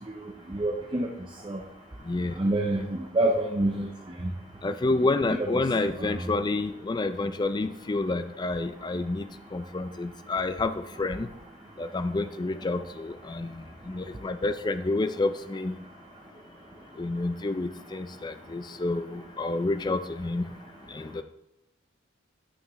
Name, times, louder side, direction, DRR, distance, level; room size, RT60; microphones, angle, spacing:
voice 1, 0.2-1.1 1.4-1.6 2.4-3.9 4.2-4.3 5.3-6.2, right 1 dB, 25° right, 1 dB, 0.6 m, -28 dB
voice 2, 4.6-11.3 11.8-15.8 17.0-20.5 20.9-21.2, left 2 dB, 20° left, 10 dB, 0.4 m, -29 dB
9.6 x 5.8 x 3.0 m, 0.85 s
head